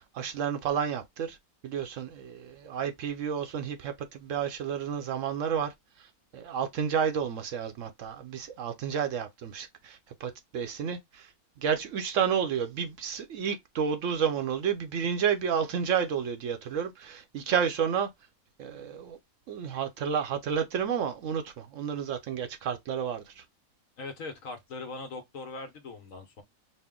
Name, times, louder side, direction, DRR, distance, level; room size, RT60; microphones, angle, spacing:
voice 1, 0.0-1.4 1.6-5.7 6.3-11.3 11.6-18.1 18.6-19.2 19.5-23.4, right 7 dB, 65° right, 0.9 m, -31 dB
voice 2, 24.0-26.4, left 3 dB, 65° left, 1.2 m, -40 dB
4.2 x 2.1 x 3.6 m
omnidirectional pair, 1.5 m